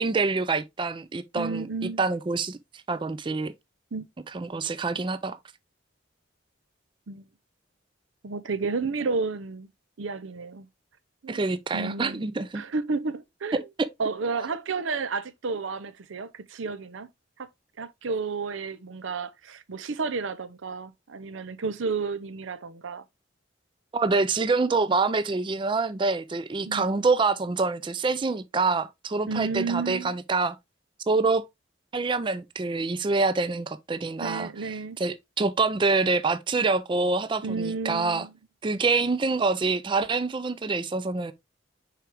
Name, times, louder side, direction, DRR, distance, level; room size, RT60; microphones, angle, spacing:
voice 1, 0.0-1.7 2.0-2.6 2.9-3.5 4.3-5.4 11.3-12.6 23.9-30.6 31.1-31.4 31.9-38.3 38.6-41.3, right 3 dB, 25° right, 0.4 m, -26 dB
voice 2, 1.3-2.0 3.9-4.1 7.1-7.3 8.2-9.7 10.0-10.7 11.2-11.4 11.7-13.7 14.0-17.1 17.4-17.5 17.8-23.0 26.6-26.9 29.3-30.2 34.2-35.0 37.4-38.3, right 4 dB, 85° right, 0.6 m, -31 dB
5.8 x 4.9 x 3.4 m
head